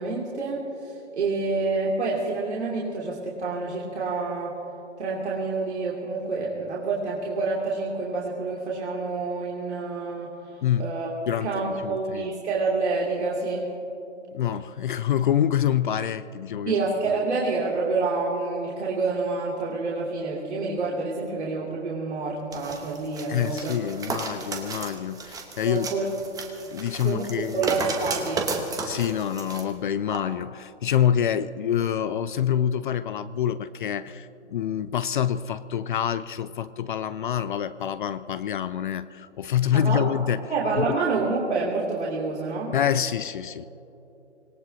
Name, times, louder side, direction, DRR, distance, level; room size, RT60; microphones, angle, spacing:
voice 1, 0.0-4.6 5.0-10.3 10.8-11.1 11.4-13.7 14.2-14.3 16.7-23.8 25.6-26.1 27.0-28.5 39.7-40.1 40.5-42.7, right 3 dB, 70° right, -4 dB, 2.8 m, -28 dB
voice 2, 10.6-10.9 11.3-12.3 14.3-17.2 23.3-25.9 26.7-27.7 28.8-40.4 40.8-41.0 42.7-43.7, left 9 dB, 45° left, 14 dB, 0.5 m, -26 dB
sound 1, 22.5-29.6 30.1-30.2, right 3 dB, 10° right, 1.1 m, -33 dB
25.5 x 18.5 x 2.8 m, 3.0 s
figure-of-eight pair, 130°, 35 cm